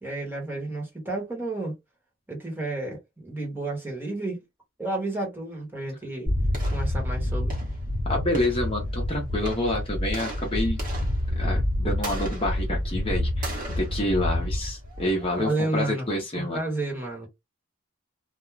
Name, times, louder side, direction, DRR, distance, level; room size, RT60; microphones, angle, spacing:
voice 1, 0.0-1.7 2.3-4.4 4.8-6.3 6.7-7.5 15.4-16.1 16.3-17.3, right 2 dB, 10° right, 1.1 m, -31 dB
sound 1, 6.3-15.4, left 1 dB, 40° right, 1.1 m, -28 dB
voice 2, 8.0-10.8 11.4-13.5 13.8-16.6, left 1 dB, 25° left, 0.7 m, -28 dB
2.3 x 2.2 x 3.1 m
head